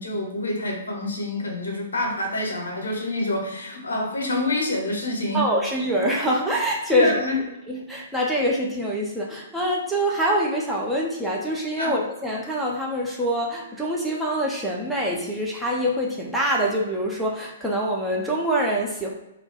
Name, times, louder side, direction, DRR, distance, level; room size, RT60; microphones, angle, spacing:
voice 1, 0.0-5.5 6.9-7.4 11.8-11.9, left 1 dB, 70° left, 1 dB, 0.8 m, -27 dB
voice 2, 5.3-7.1 7.7-19.1, equal, ahead, -4 dB, 0.5 m, -25 dB
2.3 x 2.2 x 3.9 m, 0.91 s
figure-of-eight pair, 115°, 0 cm